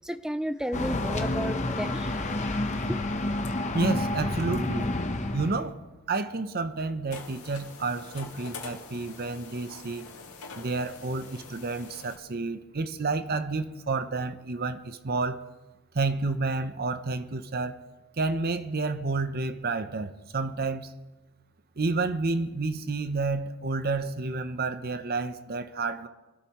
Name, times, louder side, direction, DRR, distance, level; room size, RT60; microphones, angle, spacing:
voice 1, 0.0-2.3 2.9-3.1, equal, 5° right, 11 dB, 0.4 m, -33 dB
sound 1, 0.7-5.7, left 2 dB, 35° left, 0.9 m, -29 dB
voice 2, 3.7-4.9 5.3-5.8 6.1-10.1 10.6-15.4 15.9-17.8 18.2-20.9 21.8-26.1, right 3 dB, 45° right, 11 dB, 0.7 m, -30 dB
sound 2, 7.1-12.2, left 4 dB, 85° left, 2.2 m, -45 dB
23.0 x 12.5 x 3.1 m, 1.1 s
head